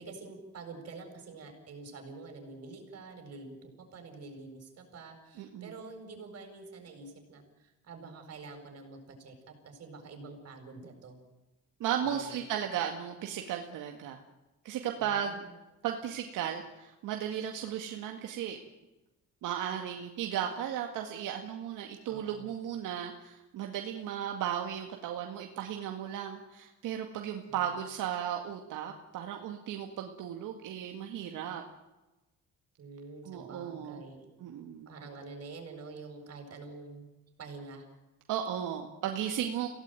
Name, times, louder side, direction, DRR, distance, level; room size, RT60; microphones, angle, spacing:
voice 1, 0.0-11.2 12.0-12.4 15.0-15.6 22.0-22.5 27.4-27.7 32.8-34.3 34.9-37.1 37.4-37.9, right 3 dB, 50° right, 4 dB, 7.7 m, -47 dB
voice 2, 5.4-5.7 11.8-14.2 14.6-15.4 15.8-18.6 19.4-31.6 33.3-34.0 34.4-34.9 38.3-39.7, right 9 dB, 80° right, 3 dB, 2.1 m, -35 dB
27.0 x 18.0 x 9.2 m, 1.1 s
cardioid pair, 130°, 31 cm